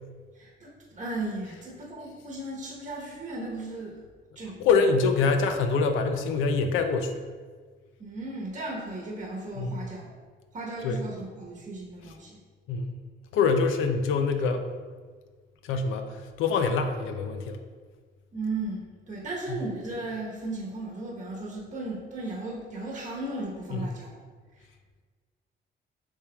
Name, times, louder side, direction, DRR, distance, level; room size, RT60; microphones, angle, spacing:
voice 1, 0.3-4.0 4.3-4.6 8.0-10.1 10.5-12.4 18.3-24.1, right 2 dB, 40° right, -4 dB, 1.0 m, -36 dB
voice 2, 4.6-7.3 9.6-9.8 10.8-11.0 12.7-13.0 13.3-14.6 15.6-17.6 19.5-19.6 23.7-23.9, left 4 dB, 85° left, 7 dB, 0.4 m, -25 dB
6.6 x 3.2 x 2.3 m, 1.5 s
cardioid pair, 90°, 20 cm